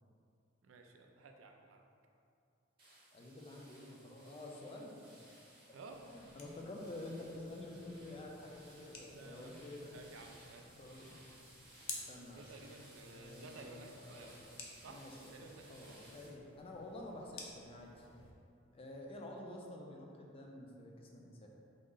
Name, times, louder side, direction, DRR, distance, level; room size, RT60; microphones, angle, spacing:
voice 1, 0.6-1.8 5.7-6.0 9.1-9.5 9.9-10.7 12.3-14.4 14.8-15.0 15.3-16.0, right 3 dB, 90° right, 3 dB, 0.4 m, -54 dB
sound 1, 2.8-16.3, right 1 dB, 30° right, 1.0 m, -61 dB
voice 2, 3.1-5.3 6.1-9.9 10.8-11.2 11.9-12.5 13.1-15.3 15.7-18.1 18.7-21.5, left 1 dB, 30° left, 0 dB, 0.4 m, -49 dB
sound 2, 5.9-18.3, left 3 dB, 85° left, 0.5 m, -54 dB
3.6 x 2.1 x 3.7 m, 2.5 s
head